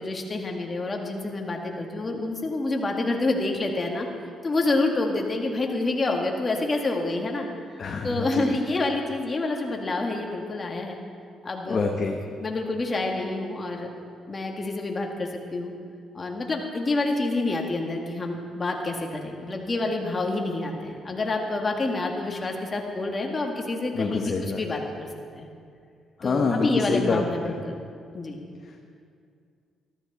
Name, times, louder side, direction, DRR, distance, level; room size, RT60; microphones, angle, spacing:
voice 1, 0.0-4.1 4.4-7.5 8.0-11.0 11.4-11.9 12.4-13.9 14.3-15.7 16.1-25.1 25.3-25.5 26.2-27.8 28.1-28.4, left 2 dB, 30° left, 1 dB, 1.9 m, -28 dB
voice 2, 7.8-8.6 11.7-12.2 23.9-24.6 26.2-27.5 28.6-28.8, left 4 dB, 45° left, 2 dB, 1.0 m, -27 dB
13.5 x 13.5 x 4.1 m, 2.3 s
cardioid pair, 90°, 0 cm